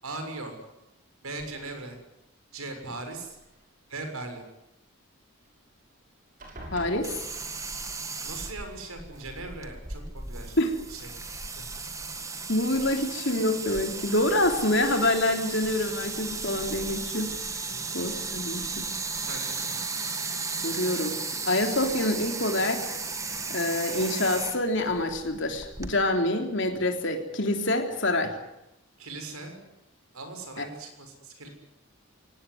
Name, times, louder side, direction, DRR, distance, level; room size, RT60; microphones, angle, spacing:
voice 1, 0.0-0.5 1.2-2.0 2.5-3.4 3.9-4.4 8.2-10.5 10.9-11.1 11.5-11.6 17.7-17.8 19.2-19.8 29.0-29.6 30.1-31.5, right 2 dB, 90° right, 5 dB, 6.5 m, -39 dB
sound 1, 1.4-2.0 2.8-3.6 5.4-5.5 5.8-6.1 6.4-7.8 9.0-9.1 9.6-10.0, right 1 dB, 40° right, 6.5 m, -46 dB
voice 2, 6.7-7.1 10.6-10.7 12.5-17.6 17.9-18.6 20.6-21.2 21.5-23.0 23.5-28.3 30.6-30.7, left 1 dB, 55° left, 5 dB, 3.6 m, -26 dB
sound 2, 7.0-26.0, right 4 dB, 15° right, 1.7 m, -35 dB
24.5 x 18.5 x 9.6 m, 0.90 s
head